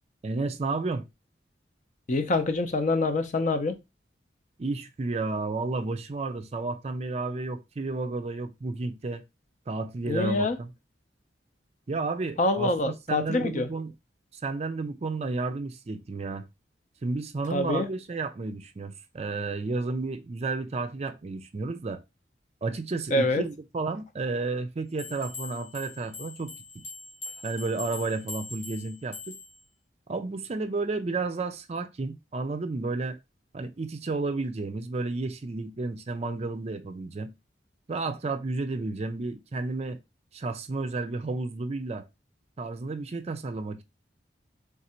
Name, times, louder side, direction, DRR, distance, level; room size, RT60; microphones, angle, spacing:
voice 1, 0.2-1.0 4.6-9.2 9.7-10.7 11.9-13.9 14.4-16.4 17.0-22.0 22.6-26.8 27.4-29.3 30.1-33.2 33.5-37.3 37.9-40.0 40.3-42.1 42.6-43.8, right 3 dB, 35° right, 0.4 m, -32 dB
voice 2, 2.1-3.8 10.1-10.6 12.4-13.7 17.5-17.9 23.1-23.4, left 2 dB, 45° left, 0.6 m, -25 dB
sound 1, 25.0-29.6, left 3 dB, 85° left, 1.5 m, -42 dB
3.6 x 2.5 x 4.3 m
head